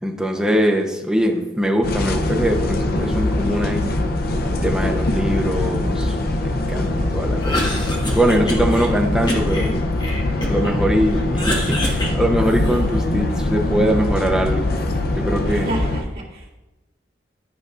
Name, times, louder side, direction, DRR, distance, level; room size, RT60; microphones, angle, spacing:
voice 1, 0.0-3.9 4.5-7.6 8.1-9.7 10.5-14.7 15.1-15.7, right 1 dB, 5° right, 1 dB, 0.7 m, -22 dB
sound 1, 1.8-16.0, left 2 dB, 50° left, 0.6 m, -22 dB
Cough, 7.3-8.9 9.3-10.8 11.1-13.0, left 1 dB, 20° left, 1.2 m, -27 dB
voice 2, 15.4-16.6, right 2 dB, 50° right, -6 dB, 2.1 m, -31 dB
12.0 x 5.2 x 2.5 m, 1.1 s
head